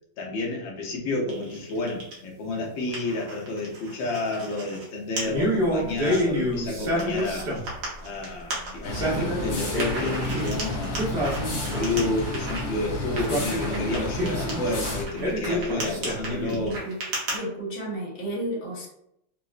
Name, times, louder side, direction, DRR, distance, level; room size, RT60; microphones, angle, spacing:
voice 1, 0.2-7.5 8.0-11.1 11.5-16.8, left 2 dB, 80° left, -1 dB, 1.5 m, -30 dB
sound 1, 1.3-2.2 2.6-4.8 5.2-5.3 5.8-6.2 7.0-9.2 9.8-12.6 13.2-17.4, right 2 dB, 85° right, 1.8 m, -36 dB
Male speech man speaking, 5.2-7.8 8.8-10.5 10.9-12.2 13.1-14.6 15.2-16.7, equal, 45° right, 0.8 m, -28 dB
sound 2, 8.8-15.0, left 1 dB, 55° left, 1.1 m, -32 dB
voice 2, 16.6-17.0 17.3-18.9, right 1 dB, 35° left, -5 dB, 1.1 m, -32 dB
5.1 x 2.0 x 2.4 m, 0.76 s
omnidirectional pair, 2.1 m